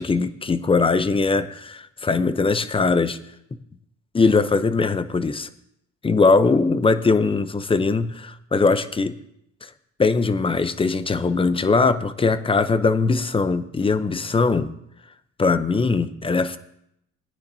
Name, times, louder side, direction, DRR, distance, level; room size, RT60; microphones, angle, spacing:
voice 1, 0.0-3.2 4.1-5.5 6.0-9.1 9.6-9.7 10.0-14.7 15.4-16.6, left 4 dB, 20° left, 12 dB, 0.6 m, -21 dB
18.0 x 9.9 x 2.7 m, 0.77 s
cardioid pair, 105°, 30 cm